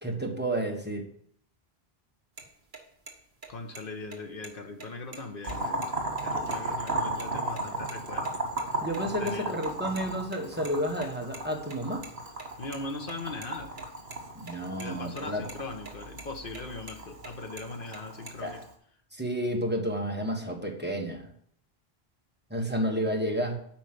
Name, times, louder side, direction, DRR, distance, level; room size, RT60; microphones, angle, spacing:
voice 1, 0.0-1.1 8.8-12.1 14.3-15.4 18.4-18.6 19.1-21.3 22.5-23.6, equal, 10° right, 1 dB, 1.4 m, -31 dB
sound 1, 2.4-2.5 2.7-2.8 3.1-3.2 3.4-3.8 4.1-4.2 4.4-4.5 4.8-5.9 6.2-6.3 6.5-6.6 6.9-7.3 7.6-8.0 8.2-9.3 9.6-12.1 12.4-14.2 14.5-14.6 14.8-15.2 15.5-15.9 16.2-17.3 17.6-18.3, right 4 dB, 50° right, 1.6 m, -45 dB
voice 2, 3.5-6.0 6.2-8.3 9.1-9.6 12.6-13.7 14.8-18.6, left 3 dB, 60° left, 4 dB, 1.5 m, -39 dB
Boiling, 5.4-18.7, right 2 dB, 80° right, 2.0 m, -35 dB
8.8 x 5.1 x 7.8 m, 0.66 s
omnidirectional pair, 1.0 m